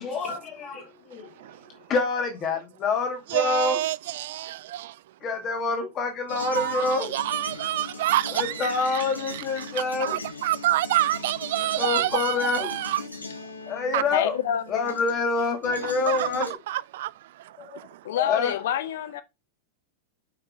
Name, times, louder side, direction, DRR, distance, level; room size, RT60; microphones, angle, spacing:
voice 1, 0.0-1.3 1.9-3.8 5.2-7.1 8.3-10.2 11.7-12.7 13.7-14.4 14.7-16.6 17.6-17.8 18.1-18.6, left 4 dB, 30° left, 2.4 m, -27 dB
voice 2, 1.4-1.7 3.3-5.0 6.3-13.0 13.9-14.0 15.8-18.0, right 15 dB, 55° right, 0.4 m, -28 dB
sound 1, 6.3-15.4 15.6-16.5, left 3 dB, 80° left, 1.5 m, -40 dB
voice 3, 14.1-14.8 18.0-19.2, left 10 dB, 55° left, 0.9 m, -27 dB
6.0 x 5.8 x 3.5 m
figure-of-eight pair, 90°, 0 cm